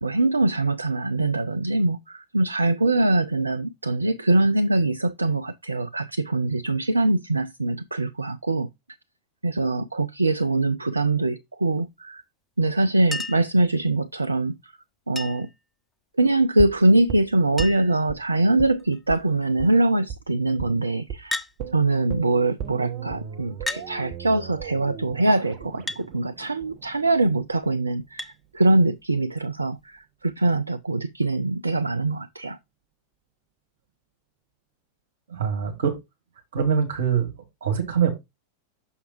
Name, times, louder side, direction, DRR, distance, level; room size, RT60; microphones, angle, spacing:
voice 1, 0.0-8.7 9.4-12.2 12.6-14.7 15.1-15.5 16.2-21.4 21.7-32.6, right 2 dB, 80° right, 0.3 m, -23 dB
Chink clink, 13.1-13.6 15.2-15.6 16.9-17.0 17.2-17.3 17.6-18.0 18.8-19.2 21.3-21.6 22.6-22.7 23.7-23.9 25.9-26.1 28.2-28.4 29.8-29.9, left 2 dB, 10° left, 0.4 m, -32 dB
sound 1, 16.6-18.2 18.6-18.8 19.1-19.2 19.6-19.7 20.1-20.2 20.6-20.8 21.1-21.2 21.6-27.6 27.9-28.0, right 8 dB, 45° right, 0.9 m, -36 dB
voice 2, 35.3-36.0 36.5-37.3 37.6-38.1, right 7 dB, 65° right, 1.8 m, -23 dB
6.4 x 5.6 x 2.9 m
figure-of-eight pair, 90°, 0 cm